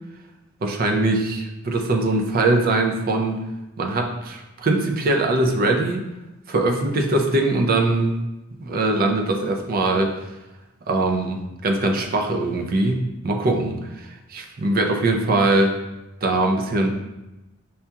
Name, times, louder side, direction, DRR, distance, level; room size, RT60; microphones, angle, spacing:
voice 1, 0.6-3.4 3.8-6.0 6.5-8.2 8.6-10.1 10.9-15.8 16.2-16.9, right 2 dB, 45° right, 4 dB, 0.4 m, -22 dB
5.5 x 2.3 x 2.8 m, 0.99 s
head